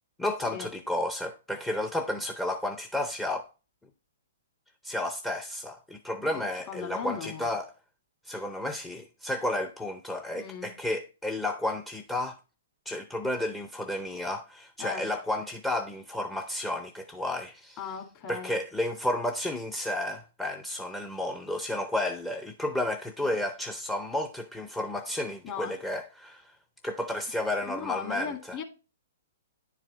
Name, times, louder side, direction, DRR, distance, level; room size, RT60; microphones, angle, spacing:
voice 1, 0.2-3.5 4.8-7.7 8.2-12.4 12.9-17.8 18.3-26.6 26.8-28.6, left 1 dB, 5° left, 0.5 m, -32 dB
voice 2, 6.2-7.5 10.3-10.7 14.8-15.1 17.8-18.6 23.2-23.4 25.4-25.8 27.7-28.6, left 7 dB, 35° left, 1.8 m, -38 dB
10.0 x 4.8 x 3.2 m
hypercardioid pair, 130°, 0 cm